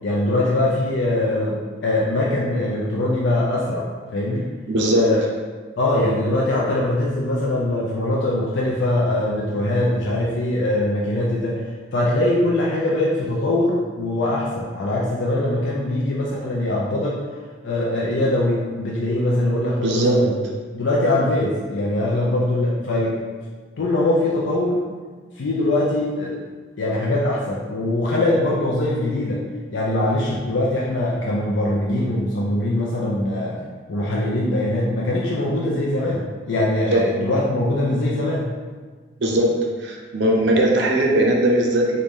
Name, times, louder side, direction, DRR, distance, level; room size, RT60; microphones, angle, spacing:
voice 1, 0.0-4.5 4.9-5.2 5.8-11.6 11.9-17.2 17.6-20.3 20.7-23.2 23.8-24.8 25.4-26.4 26.8-29.4 29.7-33.6 33.9-38.5, left 1 dB, 80° left, -4 dB, 0.4 m, -22 dB
voice 2, 4.7-5.0 19.8-20.2 36.9-37.0 39.2-39.5 39.8-42.0, right 1 dB, 70° right, 0 dB, 0.6 m, -19 dB
3.1 x 2.6 x 3.5 m, 1.5 s
head